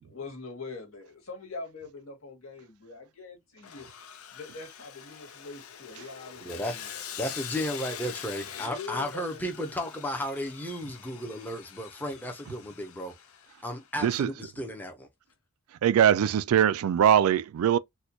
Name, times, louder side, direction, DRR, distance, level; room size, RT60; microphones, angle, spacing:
voice 1, 0.0-3.9 4.3-6.9 8.5-9.4, left 3 dB, 70° left, 1.5 m, -43 dB
Sawing, 3.6-13.9, left 9 dB, 90° left, 0.6 m, -44 dB
voice 2, 6.4-6.8 7.2-13.1 13.6-15.1, equal, 10° left, 0.6 m, -34 dB
voice 3, 14.0-14.3 15.8-17.8, right 9 dB, 85° right, 0.3 m, -22 dB
4.2 x 2.2 x 2.8 m
head